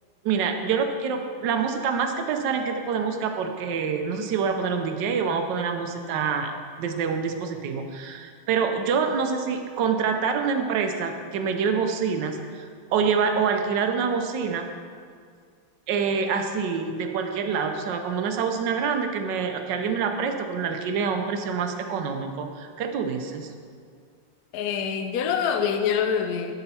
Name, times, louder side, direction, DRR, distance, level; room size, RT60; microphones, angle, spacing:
voice 1, 0.2-6.5 6.8-14.7 15.9-23.5, right 6 dB, 70° right, 5 dB, 1.3 m, -26 dB
voice 2, 24.5-26.5, left 7 dB, 75° left, 6 dB, 0.9 m, -25 dB
11.5 x 5.7 x 4.3 m, 2.1 s
omnidirectional pair, 2.2 m